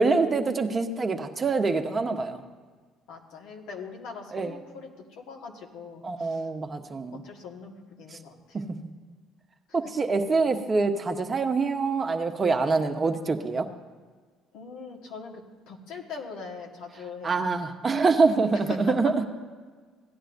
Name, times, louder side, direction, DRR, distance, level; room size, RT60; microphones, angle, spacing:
voice 1, 0.0-2.4 4.3-4.5 6.0-7.2 9.7-13.7 17.2-19.1, right 4 dB, 35° right, 5 dB, 1.0 m, -25 dB
voice 2, 3.1-6.5 7.1-8.6 14.5-17.4 18.5-19.0, left 5 dB, 70° left, 0 dB, 1.6 m, -41 dB
17.0 x 10.0 x 2.6 m, 1.5 s
hypercardioid pair, 60°, 0 cm